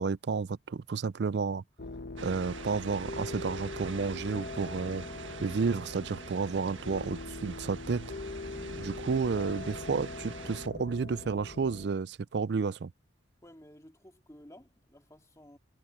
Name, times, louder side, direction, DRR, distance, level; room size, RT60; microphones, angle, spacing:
voice 1, 0.0-1.6 2.2-5.1 5.4-8.1 8.8-12.9, right 5 dB, 60° right, 0.4 m, -31 dB
sound 1, 1.8-11.9, left 2 dB, 50° left, 1.2 m, -42 dB
sound 2, 2.2-10.7, right 5 dB, 75° right, 1.6 m, -46 dB
voice 2, 13.4-15.6, left 1 dB, 15° left, 2.4 m, -54 dB
head